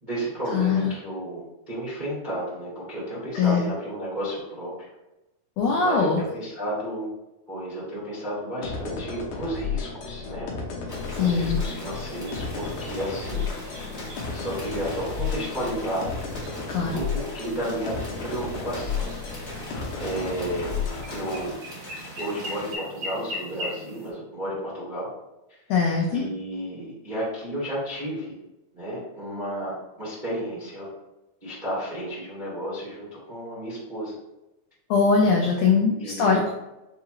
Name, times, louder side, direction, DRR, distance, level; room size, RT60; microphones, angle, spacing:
voice 1, 0.0-4.7 5.8-7.1 7.5-10.5 11.2-13.4 14.3-16.0 16.8-17.9 18.2-19.1 19.4-19.6 20.0-20.7 21.1-21.5 22.2-25.1 25.5-25.6 26.1-28.3 28.7-30.9 31.4-34.1 36.0-36.4, right 1 dB, 85° right, -9 dB, 0.4 m, -32 dB
voice 2, 0.5-0.9 3.3-3.7 5.6-6.2 11.2-11.6 16.7-17.0 25.7-26.2 34.9-36.5, left 5 dB, 90° left, 0 dB, 1.4 m, -21 dB
sound 1, 8.6-21.5, left 5 dB, 70° left, 1.6 m, -33 dB
sound 2, 10.9-22.8, left 1 dB, 40° left, 0.5 m, -42 dB
sound 3, 11.1-24.1, equal, 70° right, 1.3 m, -42 dB
6.3 x 2.4 x 2.9 m, 0.96 s
omnidirectional pair, 3.6 m